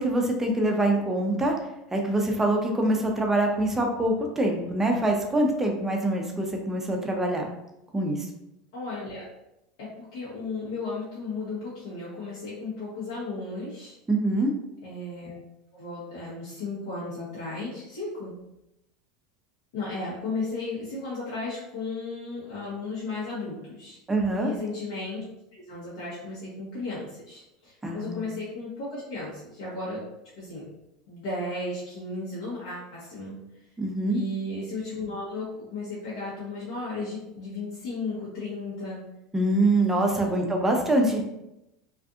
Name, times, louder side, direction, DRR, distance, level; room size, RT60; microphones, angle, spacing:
voice 1, 0.0-1.5 1.9-7.5 7.9-8.2 14.1-14.5 24.1-24.5 27.8-28.2 33.8-34.2 39.3-41.2, right 1 dB, 10° right, 2 dB, 0.5 m, -24 dB
voice 2, 8.7-9.2 9.8-14.0 14.8-15.4 15.7-18.3 19.7-24.0 24.4-25.2 25.5-30.0 30.4-30.6 31.1-33.4 34.0-39.0 40.0-40.3, left 3 dB, 75° left, -8 dB, 0.9 m, -35 dB
2.5 x 2.4 x 2.4 m, 0.88 s
hypercardioid pair, 100°, 3 cm